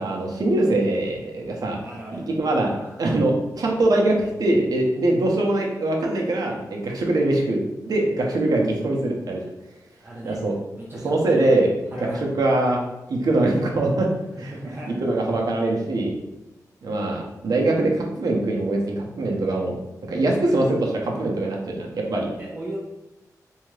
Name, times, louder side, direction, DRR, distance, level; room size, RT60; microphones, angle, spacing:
voice 1, 0.0-1.8 2.1-2.7 3.0-7.6 7.9-9.4 10.2-10.6 11.0-11.7 12.0-12.1 12.4-12.8 13.1-14.1 14.4-14.5 14.9-16.1 16.8-19.8 20.1-22.3, right 2 dB, 75° right, -1 dB, 0.6 m, -22 dB
voice 2, 1.8-2.9 10.0-10.4 10.7-11.5 11.9-12.2 14.4-15.0 22.4-22.8, right 1 dB, 35° right, -5 dB, 0.4 m, -36 dB
2.7 x 2.3 x 3.1 m, 0.95 s
wide cardioid pair, 160°, 7 cm